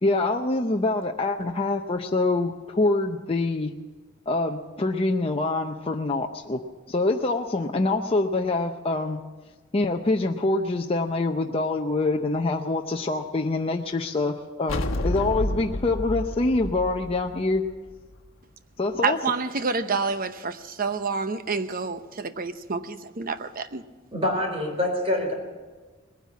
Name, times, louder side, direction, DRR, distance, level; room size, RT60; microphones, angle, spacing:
voice 1, 0.0-3.7 4.3-6.6 6.9-9.2 9.7-17.6 18.8-19.2 24.6-24.7, left 2 dB, 30° left, 3 dB, 0.7 m, -25 dB
sound 1, 14.7-18.1, left 1 dB, 70° left, 1.2 m, -30 dB
voice 2, 19.0-23.8, right 4 dB, 45° right, 10 dB, 0.8 m, -28 dB
voice 3, 24.1-25.3, left 1 dB, 30° right, 2 dB, 3.9 m, -25 dB
20.0 x 10.0 x 7.2 m, 1.3 s
head